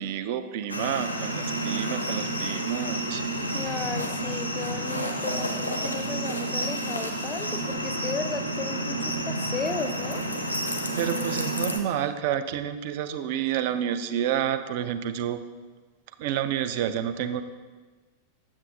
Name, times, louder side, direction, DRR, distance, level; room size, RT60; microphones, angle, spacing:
voice 1, 0.0-3.2 11.0-15.4 16.2-17.4, right 10 dB, 50° right, 11 dB, 0.4 m, -29 dB
sound 1, 0.7-11.8, right 1 dB, 85° left, 0.6 m, -30 dB
voice 2, 3.5-10.2, left 4 dB, 15° left, 9 dB, 0.5 m, -35 dB
7.4 x 7.2 x 2.4 m, 1.3 s
figure-of-eight pair, 90°, 0 cm